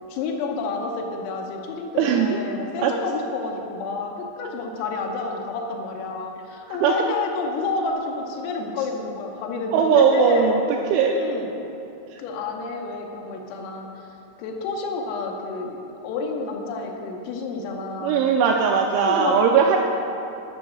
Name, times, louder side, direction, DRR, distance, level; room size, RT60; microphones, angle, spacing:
voice 1, 0.1-10.6 11.1-11.5 12.2-13.9 14.4-18.2 19.1-19.4, left 4 dB, 85° left, 1 dB, 3.5 m, -29 dB
voice 2, 2.0-2.4 2.8-2.9 6.7-6.9 9.7-10.6 10.9-11.2 18.0-19.8, right 7 dB, 85° right, 1 dB, 2.7 m, -19 dB
10.0 x 6.1 x 6.8 m, 2.9 s
omnidirectional pair, 5.9 m